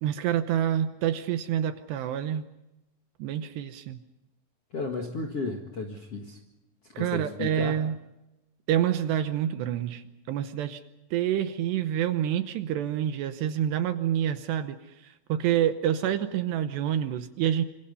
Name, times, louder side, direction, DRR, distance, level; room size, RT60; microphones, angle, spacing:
voice 1, 0.0-2.5 3.2-4.0 7.0-8.0 8.7-10.8 11.1-17.7, right 10 dB, 75° right, 10 dB, 2.7 m, -27 dB
voice 2, 4.7-6.4 7.0-7.8, left 3 dB, 50° left, 3 dB, 1.8 m, -33 dB
26.5 x 26.5 x 5.4 m, 0.92 s
omnidirectional pair, 5.5 m